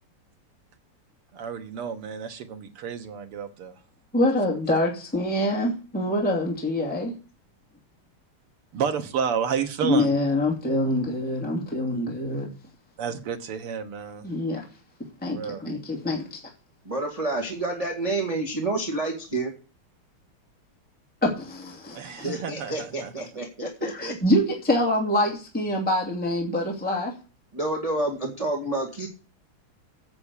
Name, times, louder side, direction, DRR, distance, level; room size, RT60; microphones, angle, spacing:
voice 1, 1.3-3.7 8.7-10.1 13.0-14.2 15.3-15.6 22.0-23.1, right 7 dB, 80° right, 2.3 m, -30 dB
voice 2, 4.1-7.1 9.8-12.5 14.2-14.7 15.2-16.4 21.2-22.3 23.6-27.1, left 1 dB, 5° left, 2.4 m, -25 dB
voice 3, 16.8-19.5 22.2-24.1 27.5-29.1, right 2 dB, 15° right, 1.8 m, -29 dB
9.0 x 6.0 x 8.3 m
omnidirectional pair, 2.4 m